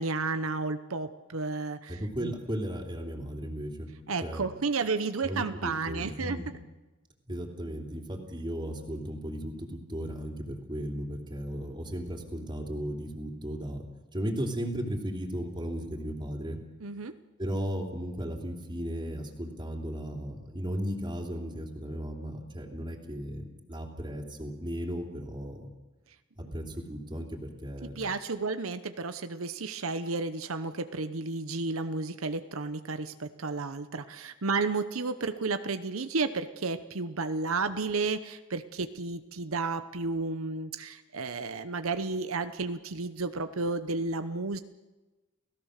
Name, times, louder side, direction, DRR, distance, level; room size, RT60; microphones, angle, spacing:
voice 1, 0.0-2.3 4.1-6.4 16.8-17.1 28.0-44.6, right 3 dB, 85° right, 10 dB, 0.9 m, -32 dB
voice 2, 1.9-3.9 4.2-4.4 5.2-6.5 7.3-13.9 14.1-16.6 17.4-25.7 26.4-28.0, equal, 25° right, 2 dB, 3.1 m, -35 dB
30.0 x 17.0 x 6.6 m, 1.2 s
head